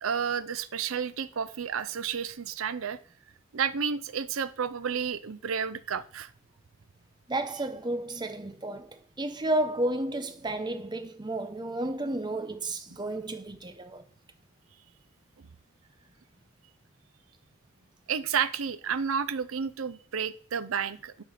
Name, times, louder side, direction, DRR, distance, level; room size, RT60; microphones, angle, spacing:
voice 1, 0.0-3.0 3.5-6.3 18.1-21.2, right 7 dB, 85° right, 0.6 m, -31 dB
voice 2, 7.3-14.0, right 1 dB, 20° right, 0.7 m, -32 dB
10.5 x 4.3 x 5.0 m
head